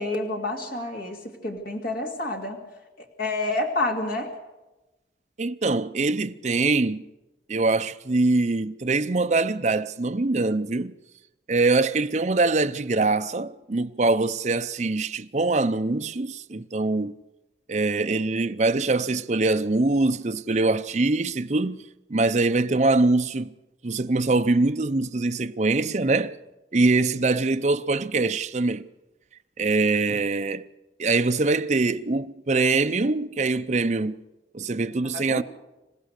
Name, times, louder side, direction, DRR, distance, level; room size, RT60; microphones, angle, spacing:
voice 1, 0.0-2.6 3.0-4.3 35.1-35.4, left 2 dB, 55° left, 2.4 m, -29 dB
voice 2, 5.4-7.1 7.5-10.9 11.5-17.2 17.7-21.8 22.1-23.5 23.8-26.4 26.7-28.9 29.6-30.7 31.0-34.1 34.5-35.4, right 3 dB, 40° right, 0.6 m, -23 dB
26.5 x 15.5 x 6.6 m
head